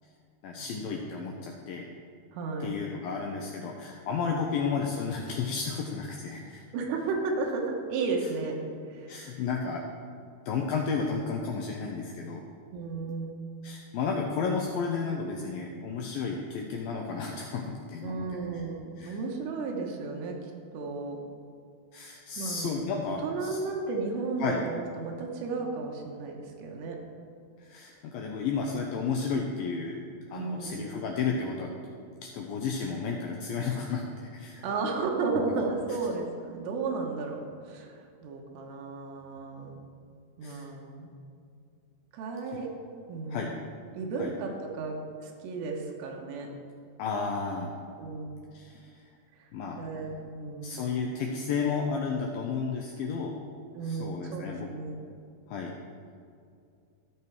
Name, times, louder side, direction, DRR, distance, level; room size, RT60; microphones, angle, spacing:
voice 1, 0.4-1.9 2.6-6.6 9.1-9.8 10.5-12.4 13.6-18.3 19.0-19.2 21.9-23.6 24.4-24.6 27.6-30.0 30.3-31.7 32.3-34.7 40.4-40.7 43.3-43.5 44.2-44.3 47.0-47.8 48.5-48.8 49.5-49.8 50.6-53.3 53.8-54.7 55.5-55.7, left 5 dB, 90° left, 1 dB, 2.0 m, -32 dB
voice 2, 2.3-2.8 6.7-8.6 8.9-9.2 12.7-13.3 18.0-20.5 20.7-21.2 22.4-22.7 23.2-27.0 30.3-30.8 34.6-39.8 40.4-41.1 42.1-42.7 43.1-43.6 43.9-45.0 45.2-46.5 48.0-48.3 49.4-49.5 49.8-50.9 53.7-55.0, right 4 dB, 85° right, 0 dB, 3.2 m, -33 dB
13.5 x 5.7 x 4.6 m, 2.4 s
omnidirectional pair, 4.9 m